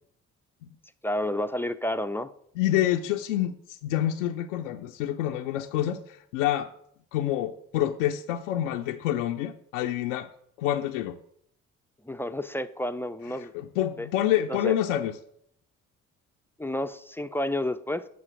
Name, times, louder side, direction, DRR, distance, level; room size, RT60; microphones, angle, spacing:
voice 1, 1.0-2.3 12.0-13.5 14.0-14.1 14.5-14.8 16.6-18.1, left 1 dB, 5° left, 10 dB, 0.4 m, -30 dB
voice 2, 2.6-6.7 7.1-10.3 10.6-11.2 13.3-15.1, left 12 dB, 70° left, 4 dB, 0.6 m, -27 dB
9.2 x 5.5 x 6.1 m, 0.69 s
figure-of-eight pair, 40°, 40 cm